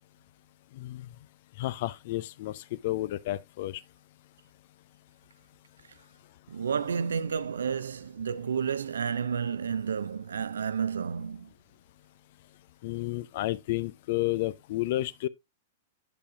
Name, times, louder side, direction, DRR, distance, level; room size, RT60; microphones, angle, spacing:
voice 1, 0.7-1.1 1.6-3.8 12.8-15.3, left 17 dB, 60° left, 0.5 m, -31 dB
voice 2, 6.5-11.5, right 6 dB, 80° right, 0.5 m, -31 dB
8.4 x 6.9 x 2.5 m
hypercardioid pair, 105°, 0 cm